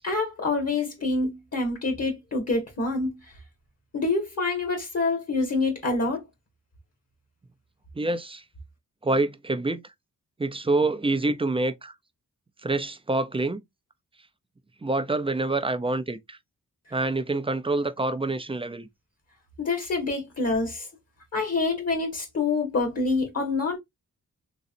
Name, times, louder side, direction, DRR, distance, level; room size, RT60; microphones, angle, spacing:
voice 1, 0.0-3.2 3.9-6.2 19.6-20.9 21.3-23.8, left 3 dB, 50° left, 1.9 m, -26 dB
voice 2, 8.0-8.4 9.0-9.8 10.4-11.9 12.6-13.6 14.8-16.4 16.9-18.9, right 2 dB, 15° right, 0.5 m, -26 dB
3.9 x 3.1 x 2.6 m
cardioid pair, 90°, 33 cm